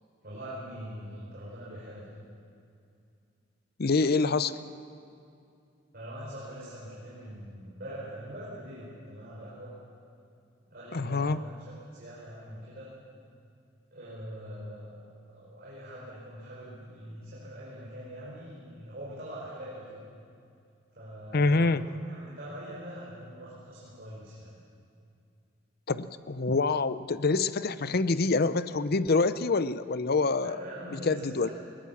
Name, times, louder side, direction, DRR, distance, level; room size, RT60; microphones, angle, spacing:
voice 1, 0.2-2.1 5.9-9.7 10.7-12.9 13.9-20.0 20.9-24.6 30.4-31.5, equal, 50° right, -8 dB, 5.0 m, -43 dB
voice 2, 3.8-4.5 10.9-11.4 21.3-21.8 25.9-30.6 31.1-31.5, left 3 dB, 50° left, 14 dB, 0.6 m, -26 dB
21.0 x 19.0 x 7.2 m, 2.5 s
head